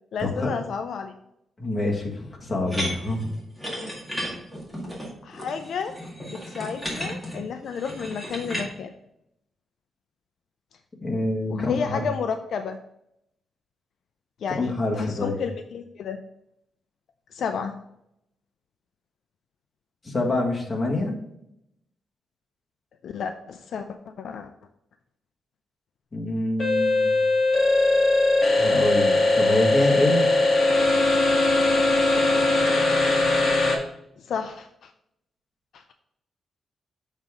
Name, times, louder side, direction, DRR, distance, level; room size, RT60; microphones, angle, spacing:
voice 1, 0.1-1.1 5.2-6.0 6.3-8.9 11.5-12.8 14.4-16.2 17.3-17.7 23.0-23.9 24.2-24.5 34.2-34.9 35.7-35.9, left 6 dB, 70° left, 7 dB, 0.4 m, -31 dB
voice 2, 1.6-3.2 11.0-12.0 14.5-15.4 20.0-21.1 26.1-27.2 28.6-30.3, left 2 dB, 25° left, -2 dB, 1.7 m, -26 dB
sound 1, 2.7-8.7, equal, ahead, 1.9 m, -34 dB
sound 2, 26.6-33.8, left 2 dB, 40° left, 1.5 m, -20 dB
7.4 x 3.6 x 4.9 m, 0.79 s
cardioid pair, 125°, 0 cm